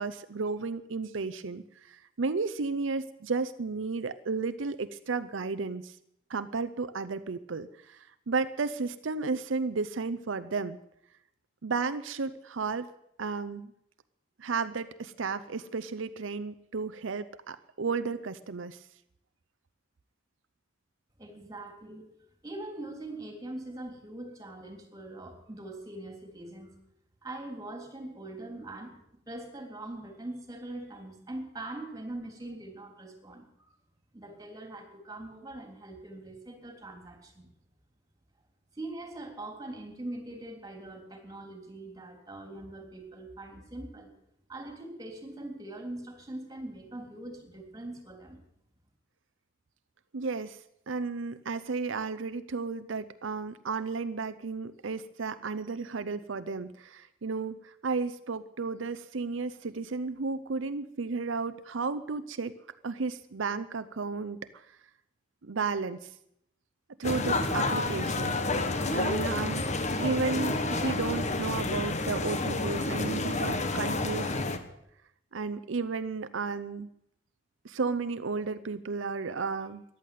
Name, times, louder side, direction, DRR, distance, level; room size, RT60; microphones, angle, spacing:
voice 1, 0.0-6.0 6.3-10.8 11.6-12.9 13.2-13.7 14.4-18.8 50.1-50.6 50.9-62.6 62.8-64.6 65.4-66.1 67.0-69.7 70.0-74.3 75.3-76.9 77.6-79.8, right 4 dB, 85° right, 12 dB, 0.7 m, -33 dB
voice 2, 21.2-22.0 22.4-26.7 27.2-29.0 29.3-33.7 34.1-37.5 38.7-44.1 44.5-48.4, right 2 dB, 20° right, 5 dB, 3.4 m, -42 dB
sound 1, 67.0-74.6, left 2 dB, 35° left, 1.3 m, -29 dB
14.5 x 11.0 x 9.2 m, 0.78 s
head